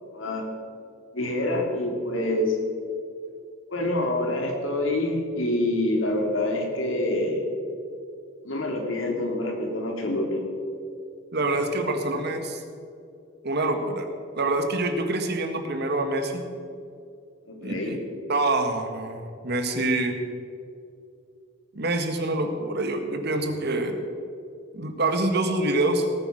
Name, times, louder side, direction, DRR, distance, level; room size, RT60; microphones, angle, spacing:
voice 1, 0.1-0.5 1.1-2.6 3.7-7.4 8.4-10.4 17.5-18.0, left 1 dB, 85° left, 1 dB, 2.8 m, -26 dB
voice 2, 11.3-12.6 13.4-14.1 14.3-16.4 17.6-18.0 18.3-20.2 21.7-23.9 24.7-26.0, right 2 dB, 55° right, 5 dB, 1.7 m, -26 dB
18.5 x 9.1 x 6.3 m, 2.4 s
head